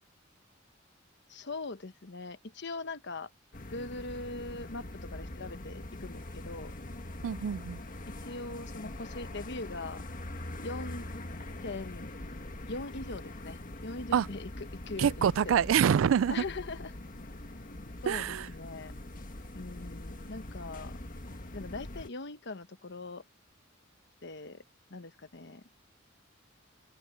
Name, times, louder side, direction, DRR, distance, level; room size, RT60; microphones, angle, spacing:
voice 1, 1.3-3.3 3.7-6.7 8.1-10.0 10.6-11.1 11.6-12.1 12.7-15.7 16.3-16.9 18.0-18.9 19.5-21.0 21.5-23.2 24.2-24.6 24.9-25.6, left 3 dB, 60° left, 1.1 m, -41 dB
sound 1, 3.5-22.1, left 1 dB, 45° left, 1.7 m, -43 dB
voice 2, 7.2-7.8 14.1-14.3 15.0-16.4 18.1-18.5, right 8 dB, 80° right, 0.3 m, -26 dB
open air
head